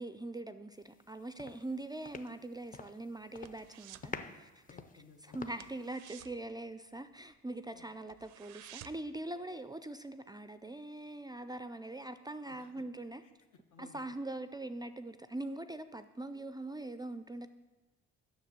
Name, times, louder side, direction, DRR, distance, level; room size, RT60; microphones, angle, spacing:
voice 1, 0.0-4.8 5.3-13.2 13.8-17.5, right 2 dB, 15° right, 11 dB, 0.3 m, -42 dB
sound 1, 0.9-1.1 1.4-3.0 3.3-3.7 4.0-5.9, left 4 dB, 25° left, 0.6 m, -47 dB
sound 2, 2.6-4.2 4.4-4.7 5.0-5.2 5.5-7.4 7.7-7.8 8.1-9.2 9.5-9.6, right 13 dB, 80° right, 0.5 m, -54 dB
voice 2, 4.7-5.4 7.7-7.8 12.4-12.8 13.2-14.1, left 6 dB, 75° left, 5 dB, 1.2 m, -59 dB
7.6 x 6.3 x 6.7 m, 1.2 s
cardioid pair, 90°, 30 cm